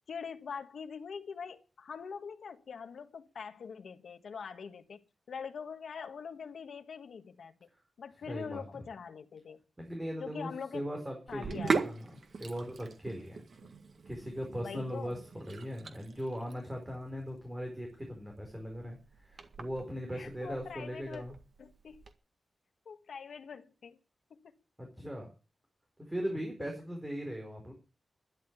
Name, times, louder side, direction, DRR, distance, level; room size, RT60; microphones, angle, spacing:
voice 1, 0.1-5.0 5.3-7.6 8.0-9.6 10.2-10.8 11.3-11.9 14.6-15.1 20.1-21.2 21.6-22.0 22.8-24.0 24.3-24.5, left 6 dB, 75° left, 1.7 m, -43 dB
voice 2, 8.3-8.6 9.8-12.1 12.3-13.4 14.0-21.3 24.8-25.3 26.1-27.7, equal, 10° right, 4.8 m, -39 dB
Sink (filling or washing), 11.3-22.1, right 4 dB, 55° right, 1.9 m, -40 dB
12.5 x 11.0 x 8.2 m
wide cardioid pair, 175°, 0 cm